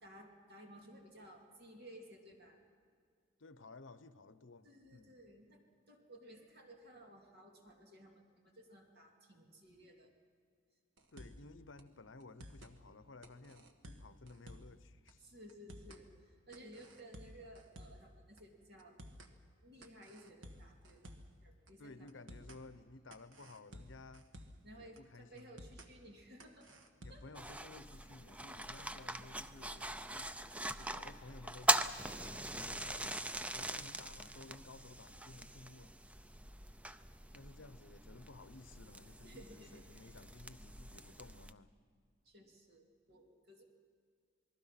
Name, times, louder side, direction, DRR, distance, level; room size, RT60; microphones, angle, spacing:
voice 1, 0.0-2.6 4.6-5.6 5.9-10.1 15.2-16.1 16.5-18.9 19.6-21.1 21.4-22.2 24.6-26.7 27.1-27.3 39.2-40.0 42.2-43.6, right 1 dB, 55° right, 2.7 m, -57 dB
voice 2, 3.4-5.2 11.1-15.3 21.8-24.3 24.7-25.6 27.0-30.3 30.7-35.9 37.3-41.7, left 3 dB, 70° left, 0.9 m, -56 dB
sound 1, 11.0-11.5 11.8-11.9 12.2-12.7 13.2-14.8 15.1-15.2 15.5-16.0 16.5-18.1 18.4-18.5 18.8-19.3 19.8-21.4 21.7-21.8 22.1-22.6 23.1-24.7 25.0-25.1 25.4-25.9 26.4-27.4, equal, 75° right, 1.6 m, -54 dB
sound 2, 27.3-41.5, right 1 dB, 5° right, 0.5 m, -41 dB
28.0 x 20.0 x 5.8 m
head